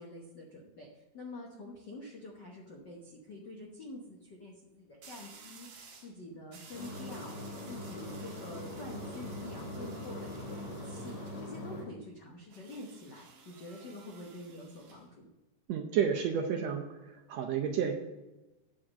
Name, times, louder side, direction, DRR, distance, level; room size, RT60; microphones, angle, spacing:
voice 1, 0.0-15.3, left 2 dB, 65° left, -1 dB, 1.0 m, -47 dB
sound 1, 1.9-2.2 5.0-6.2 6.5-11.5 12.5-15.1, right 5 dB, 55° right, 2.2 m, -55 dB
sound 2, 6.7-11.8, left 1 dB, 80° left, 4.4 m, -42 dB
voice 2, 15.7-16.9 17.3-17.9, right 7 dB, 75° right, 3 dB, 1.6 m, -30 dB
8.6 x 5.0 x 7.2 m, 1.0 s
omnidirectional pair, 3.6 m